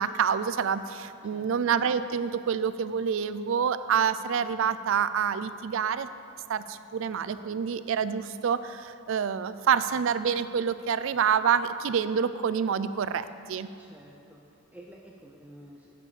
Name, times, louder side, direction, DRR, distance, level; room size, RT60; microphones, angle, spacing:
voice 1, 0.0-6.1 6.5-13.7, right 7 dB, 60° right, 13 dB, 0.3 m, -27 dB
voice 2, 1.2-1.7 13.8-15.9, right 1 dB, 5° right, -1 dB, 0.5 m, -51 dB
10.5 x 6.7 x 4.9 m, 2.7 s
head